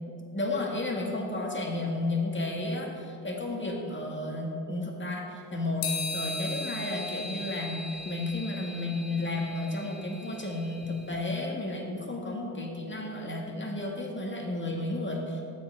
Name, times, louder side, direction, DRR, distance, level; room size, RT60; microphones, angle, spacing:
voice 1, 0.3-15.4, left 2 dB, 25° left, 0 dB, 1.9 m, -32 dB
sound 1, 5.8-11.1, left 3 dB, 85° left, 1.1 m, -38 dB
7.6 x 7.0 x 5.1 m, 2.5 s
hypercardioid pair, 45°, 49 cm